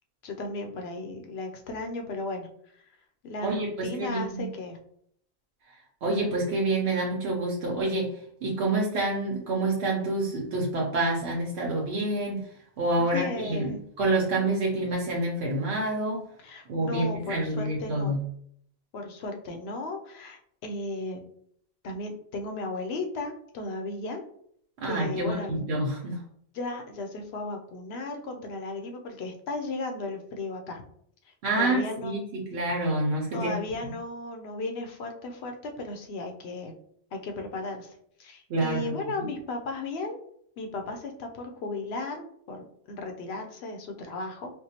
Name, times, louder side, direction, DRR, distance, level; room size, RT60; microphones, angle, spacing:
voice 1, 0.2-2.5 3.2-4.8 13.0-13.8 16.4-18.1 18.9-21.2 21.8-24.2 24.8-25.5 26.5-30.8 31.6-32.1 33.3-36.7 37.1-37.9 38.2-40.2 40.6-44.5, left 3 dB, 80° left, 4 dB, 0.9 m, -35 dB
voice 2, 3.4-4.4 6.0-8.1 8.4-12.4 12.8-13.7 14.0-16.2 16.7-18.2 24.8-26.2 31.4-33.5 33.8-33.9 38.5-39.3, right 2 dB, 90° right, -3 dB, 1.0 m, -27 dB
4.4 x 2.2 x 2.8 m, 0.66 s
omnidirectional pair, 1.1 m